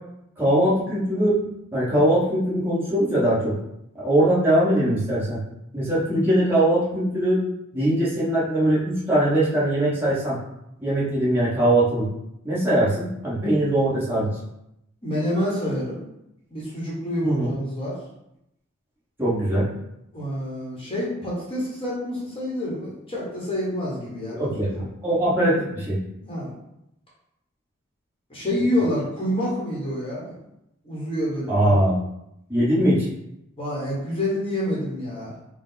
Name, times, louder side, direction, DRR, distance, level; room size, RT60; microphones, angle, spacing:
voice 1, 0.4-1.4 1.7-3.5 3.9-5.4 5.7-7.4 7.7-10.4 10.8-12.1 12.4-14.3 17.2-17.5 19.2-19.7 24.4-26.0 31.5-32.0 32.5-33.1, right 1 dB, 10° right, -9 dB, 1.3 m, -21 dB
voice 2, 15.0-16.0 16.5-18.0 20.1-24.4 24.7-24.8 26.2-26.5 28.3-30.3 30.8-31.9 33.6-35.5, left 1 dB, 25° left, -6 dB, 1.2 m, -27 dB
4.5 x 2.3 x 4.0 m, 0.84 s
head